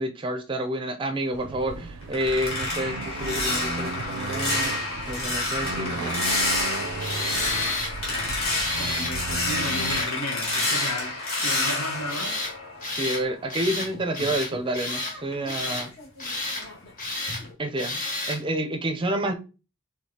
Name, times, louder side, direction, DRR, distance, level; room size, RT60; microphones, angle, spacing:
voice 1, 0.0-4.7 5.1-6.2 13.0-15.9 17.6-18.0 18.3-19.3, right 1 dB, 25° right, 0.4 m, -29 dB
Accelerating revving vroom, 1.3-10.1, right 3 dB, 85° right, 0.4 m, -35 dB
sound 1, 1.6-13.2 13.6-16.2 16.6-16.9 17.3-17.5, left 2 dB, 60° left, 1.8 m, -29 dB
Tools, 7.0-7.9 8.5-9.2 9.6-10.1 10.5-11.0 11.3-11.8 12.1-12.5 12.8-13.2 13.5-13.9 14.1-15.1 15.5-15.9 16.2-16.6 17.0-17.4 17.8-18.4, left 2 dB, 40° left, 1.4 m, -30 dB
voice 2, 8.1-11.2 11.4-12.4, left 1 dB, 85° left, 1.3 m, -34 dB
4.8 x 3.6 x 2.8 m
head